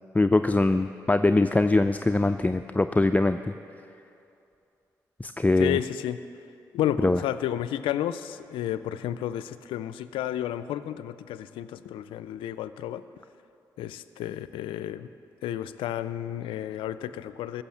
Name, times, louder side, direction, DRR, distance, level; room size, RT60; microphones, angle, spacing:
voice 1, 0.1-3.4 5.2-5.8 7.0-7.2, left 2 dB, 20° left, 9 dB, 0.4 m, -22 dB
voice 2, 5.6-6.2 6.7-13.0 13.8-15.1 15.4-17.6, left 11 dB, 80° left, 14 dB, 0.4 m, -31 dB
15.5 x 6.7 x 7.2 m, 2.7 s
hypercardioid pair, 40°, 9 cm